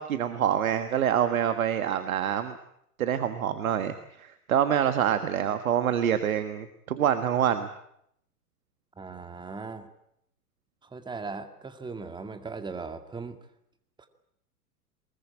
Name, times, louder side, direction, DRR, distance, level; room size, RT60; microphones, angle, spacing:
voice 1, 0.0-2.5 3.0-7.7, right 9 dB, 60° right, 10 dB, 1.6 m, -26 dB
voice 2, 9.0-9.9 10.8-13.4 14.0-14.1, right 4 dB, 10° right, 7 dB, 2.1 m, -38 dB
23.0 x 21.5 x 8.8 m, 0.74 s
figure-of-eight pair, 95°, 46 cm